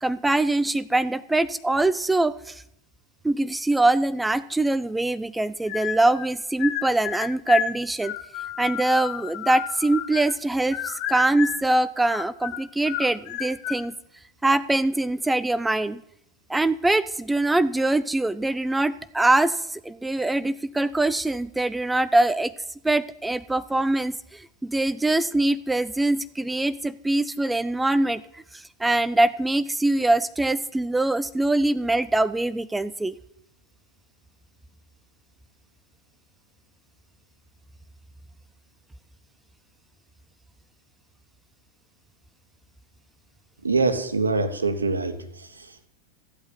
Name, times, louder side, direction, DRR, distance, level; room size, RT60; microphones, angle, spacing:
voice 1, 0.0-2.6 3.2-8.1 8.6-13.9 14.4-16.0 16.5-22.5 22.8-33.1, right 2 dB, 5° right, 15 dB, 0.5 m, -23 dB
sound 1, 5.7-6.3 6.6-10.4 10.7-11.7 12.0-13.9, left 10 dB, 45° left, 1.2 m, -32 dB
voice 2, 43.6-45.9, right 3 dB, 75° right, 9 dB, 1.5 m, -25 dB
15.0 x 8.6 x 9.7 m, 0.75 s
figure-of-eight pair, 90°, 0 cm